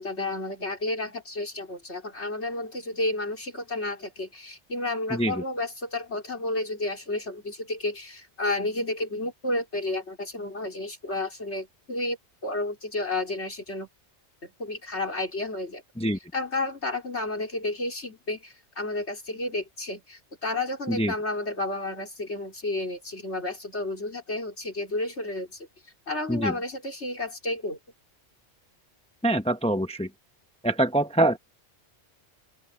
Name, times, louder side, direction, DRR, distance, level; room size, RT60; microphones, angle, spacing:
voice 1, 0.0-12.2 12.4-13.9 14.4-15.8 16.3-25.7 26.1-27.8, left 2 dB, 80° left, 4.5 m, -31 dB
voice 2, 5.1-5.4 16.0-16.2 20.9-21.1 26.3-26.5 29.2-30.1 30.6-31.4, right 1 dB, 5° left, 0.8 m, -24 dB
open air
omnidirectional pair, 1.1 m